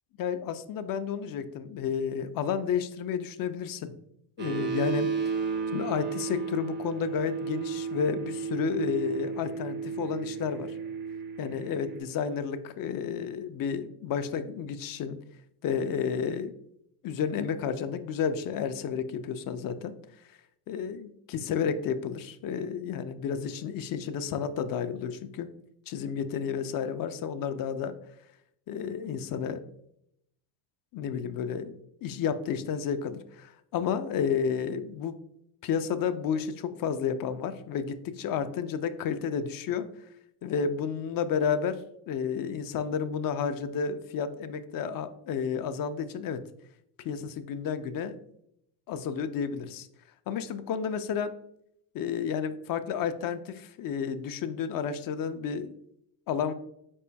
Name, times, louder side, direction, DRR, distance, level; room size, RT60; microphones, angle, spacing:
voice 1, 0.2-3.9 4.4-5.1 5.7-10.8 11.4-15.2 15.6-16.6 17.0-19.9 20.7-25.5 25.9-27.9 28.7-29.6 30.9-35.2 35.6-39.9 40.4-46.4 47.0-48.2 48.9-49.9 50.3-51.3 51.9-55.7 56.3-56.5, left 7 dB, 50° left, 11 dB, 0.4 m, -31 dB
sound 1, 4.4-12.0, right 6 dB, 25° right, 0.4 m, -33 dB
4.4 x 4.3 x 2.2 m, 0.76 s
cardioid pair, 95°, 46 cm